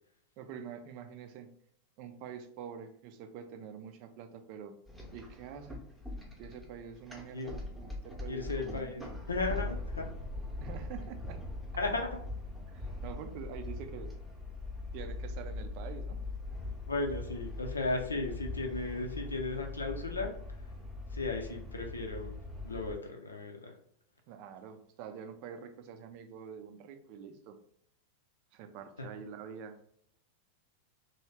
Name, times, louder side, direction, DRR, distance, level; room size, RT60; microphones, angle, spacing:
voice 1, 0.4-1.5 2.0-4.7 5.1-5.9 6.4-9.2 10.6-11.4 12.7-14.1 14.9-16.2 24.3-27.6 28.5-29.8, right 7 dB, 45° right, 7 dB, 0.5 m, -46 dB
sound 1, 4.9-23.0, left 2 dB, ahead, 0.8 m, -41 dB
voice 2, 8.3-10.1 11.8-12.1 16.9-20.3 21.1-22.4 22.6-23.8 29.0-29.2, left 3 dB, 75° left, 3 dB, 0.6 m, -35 dB
3.1 x 2.7 x 3.3 m, 0.68 s
figure-of-eight pair, 90°, 0 cm